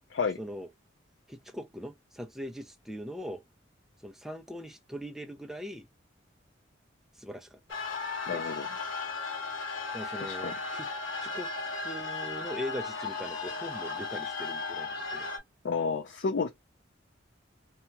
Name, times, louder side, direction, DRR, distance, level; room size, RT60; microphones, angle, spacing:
voice 1, 0.4-0.7 1.3-3.4 4.0-5.9 7.1-7.6 8.3-8.4 9.9-10.9 11.2-11.5 11.8-15.3, equal, ahead, 0.4 m, -41 dB
sound 1, 7.7-15.4, left 4 dB, 80° left, 1.0 m, -36 dB
voice 2, 8.3-8.7 10.2-10.5 15.6-16.5, left 5 dB, 60° left, 0.4 m, -30 dB
2.7 x 2.3 x 2.8 m
head